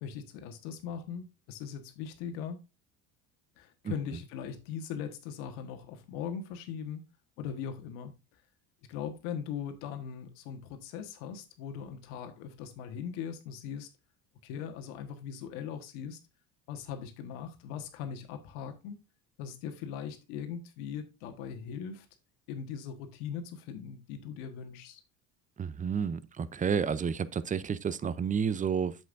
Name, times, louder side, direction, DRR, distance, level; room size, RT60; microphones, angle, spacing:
voice 1, 0.0-2.6 3.6-7.0 7.4-8.1 8.9-13.9 14.4-16.2 16.7-19.0 19.4-22.1 22.5-25.0, left 7 dB, 85° left, 1.4 m, -40 dB
voice 2, 25.6-29.0, right 7 dB, 20° right, 0.5 m, -30 dB
8.1 x 7.1 x 2.6 m
supercardioid pair, 100°, 41 cm